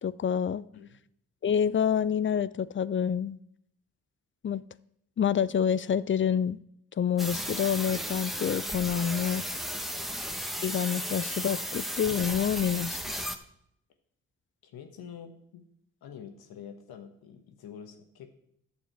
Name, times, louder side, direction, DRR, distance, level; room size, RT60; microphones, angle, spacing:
voice 1, 0.0-0.6 1.4-3.4 4.4-4.6 5.2-6.6 7.0-9.4 10.6-13.0, left 8 dB, 35° left, 18 dB, 0.5 m, -27 dB
sound 1, 7.2-13.4, equal, ahead, 1.0 m, -34 dB
voice 2, 9.7-10.1 13.2-13.3 14.6-15.6 16.0-18.3, left 8 dB, 75° left, 7 dB, 1.3 m, -47 dB
10.0 x 6.9 x 4.4 m, 0.73 s
hypercardioid pair, 45°, 37 cm